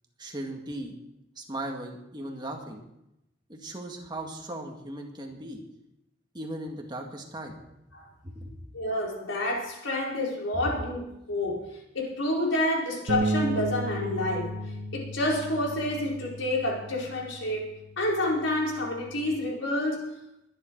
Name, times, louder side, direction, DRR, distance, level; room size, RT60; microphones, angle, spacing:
voice 1, 0.2-0.9 1.4-2.8 3.5-5.6 6.3-7.6 8.2-8.6 10.5-10.8 11.4-11.5, right 1 dB, 25° right, 2 dB, 2.1 m, -37 dB
voice 2, 8.7-11.0 11.3-11.7 11.9-14.6 14.9-17.6 18.0-20.1, left 1 dB, 85° left, -2 dB, 4.8 m, -28 dB
sound 1, 13.1-19.3, right 2 dB, 60° right, 1.8 m, -34 dB
22.0 x 10.5 x 4.7 m, 0.85 s
head